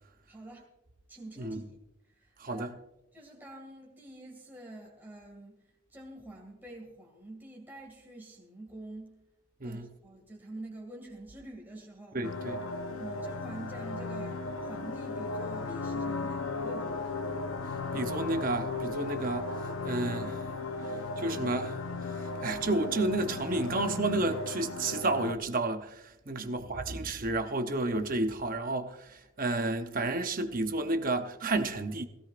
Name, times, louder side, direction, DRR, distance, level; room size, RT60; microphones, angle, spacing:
voice 1, 0.3-0.7 1.1-1.6 2.1-2.7 3.1-5.6 5.9-9.2 9.6-12.2 13.0-17.2 20.7-20.9 21.2-21.3 26.2-26.4, right 1 dB, 10° right, 2.3 m, -47 dB
voice 2, 12.1-12.6 17.9-19.6 19.8-20.4 21.2-21.8 22.4-32.1, right 2 dB, 45° right, 0.8 m, -31 dB
sound 1, 12.2-25.3, left 3 dB, 75° left, 0.9 m, -36 dB
17.0 x 16.5 x 2.5 m
head